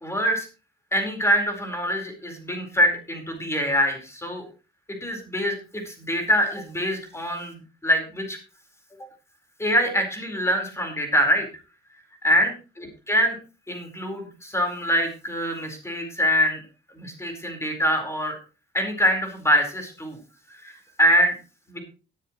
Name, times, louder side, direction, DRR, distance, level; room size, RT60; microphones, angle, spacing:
voice 1, 0.0-0.5 0.9-4.4 4.9-8.4 9.6-11.5 12.2-12.5 12.8-13.4 13.7-16.6 16.9-18.4 18.7-20.2 20.5-21.4 21.7-21.8, equal, 15° left, 4 dB, 4.6 m, -24 dB
17.5 x 10.5 x 3.1 m, 0.33 s
cardioid pair, 90°, 20 cm